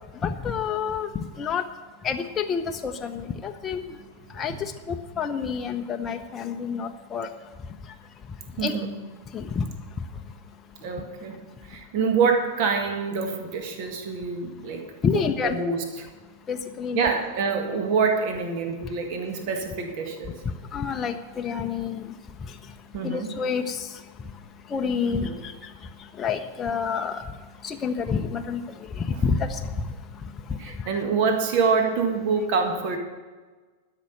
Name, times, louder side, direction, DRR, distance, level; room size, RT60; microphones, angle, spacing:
voice 1, 0.2-1.1 1.4-1.6 2.0-3.8 4.3-7.3 8.6-8.9 9.3-9.7 15.0-15.6 16.5-17.0 20.7-22.1 22.4-22.5 23.0-24.0 24.7-25.7 26.2-27.2 27.6-29.9, left 6 dB, 20° left, 5 dB, 0.7 m, -28 dB
voice 2, 4.0-4.6 8.6-9.0 10.8-14.9 15.1-16.1 16.9-20.3 22.9-23.3 25.1-25.4 29.1-29.2 30.6-33.0, right 5 dB, 45° right, 4 dB, 1.7 m, -26 dB
12.5 x 6.1 x 8.9 m, 1.4 s
figure-of-eight pair, 95°, 0 cm